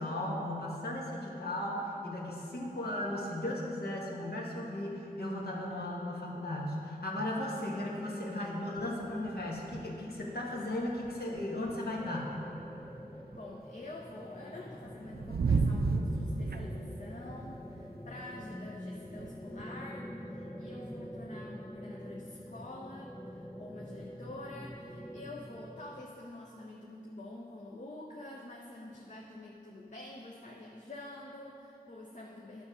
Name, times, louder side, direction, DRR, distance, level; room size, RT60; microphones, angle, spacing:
voice 1, 0.0-12.4, left 1 dB, 75° left, -3 dB, 1.5 m, -36 dB
sound 1, 8.8-10.1 10.4-10.5 10.8-13.6 14.2-19.7, right 4 dB, 70° right, 0.5 m, -35 dB
sound 2, 12.0-26.0, equal, 5° left, 0.3 m, -46 dB
voice 2, 13.1-32.6, left 1 dB, 50° left, -1 dB, 0.7 m, -47 dB
9.7 x 6.2 x 5.0 m, 2.9 s
wide cardioid pair, 60°, 16 cm